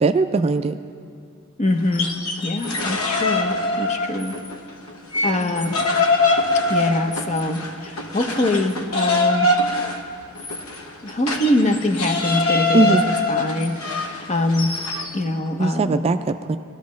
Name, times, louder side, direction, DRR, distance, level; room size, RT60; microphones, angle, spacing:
voice 1, 0.0-0.8 12.7-13.0 15.6-16.6, right 3 dB, 30° right, 9 dB, 0.3 m, -19 dB
voice 2, 1.6-2.1 2.4-4.4 5.2-5.9 6.7-9.5 11.0-13.0 13.3-14.7 15.1-16.0, left 1 dB, 35° left, 5 dB, 0.7 m, -23 dB
sound 1, 1.8-4.6 4.9-15.2, left 2 dB, 75° left, 1.0 m, -23 dB
19.5 x 12.0 x 3.2 m, 2.3 s
head